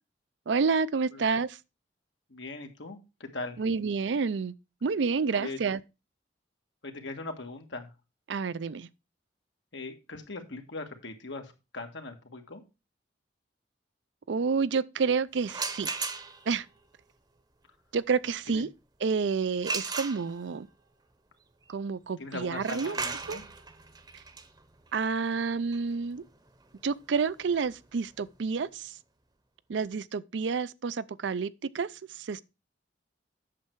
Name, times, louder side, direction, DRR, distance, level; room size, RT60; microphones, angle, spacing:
voice 1, 0.5-1.6 3.6-4.5 4.8-5.8 8.3-8.9 14.3-15.9 16.5-16.7 17.9-18.7 19.0-20.7 21.7-23.0 23.3-23.4 24.9-26.2 26.8-29.0 29.7-32.4, right 5 dB, 75° right, 0.5 m, -29 dB
voice 2, 2.3-3.6 5.3-5.6 6.8-7.9 9.7-12.6 18.5-18.6 22.2-23.4, left 2 dB, 85° left, 1.7 m, -40 dB
sound 1, 15.4-16.6 19.6-20.7 22.5-28.2, right 4 dB, 25° right, 0.8 m, -37 dB
8.5 x 6.7 x 4.6 m
head